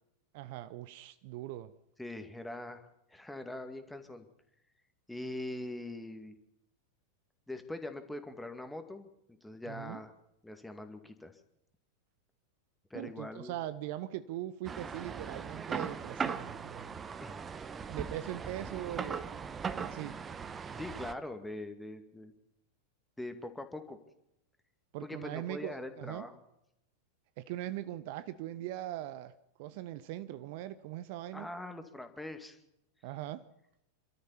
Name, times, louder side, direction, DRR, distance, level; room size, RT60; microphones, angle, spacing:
voice 1, 0.3-1.7 9.7-10.0 12.9-17.0 17.9-20.2 24.9-26.2 27.4-29.3 29.6-31.5 33.0-33.5, right 13 dB, 50° right, 0.7 m, -41 dB
voice 2, 2.0-4.3 5.1-6.3 7.5-10.1 10.4-11.4 12.9-13.6 17.2-17.4 20.8-22.3 23.2-24.0 25.0-26.4 31.3-32.6, left 1 dB, 5° left, 2.2 m, -42 dB
sound 1, 14.6-21.1, right 6 dB, 20° right, 1.0 m, -39 dB
28.0 x 13.0 x 7.1 m
figure-of-eight pair, 90°, 0 cm